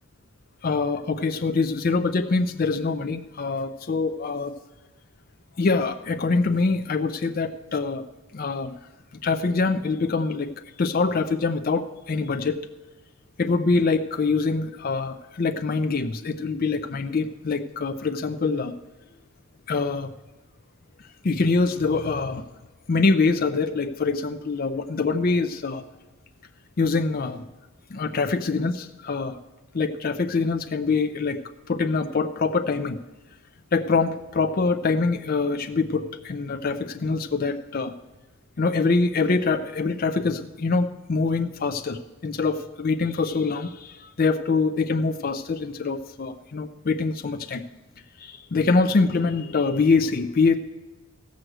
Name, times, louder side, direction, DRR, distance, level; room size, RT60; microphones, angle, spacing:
voice 1, 0.6-4.5 5.6-8.0 8.3-8.7 9.2-10.5 10.8-12.6 13.4-18.7 19.7-20.1 21.2-22.4 22.9-25.8 26.8-27.5 27.9-29.4 29.7-31.4 31.7-33.0 33.7-37.9 38.6-47.6 48.2-50.6, left 4 dB, 45° left, 8 dB, 0.5 m, -24 dB
14.5 x 6.3 x 7.8 m, 1.1 s
head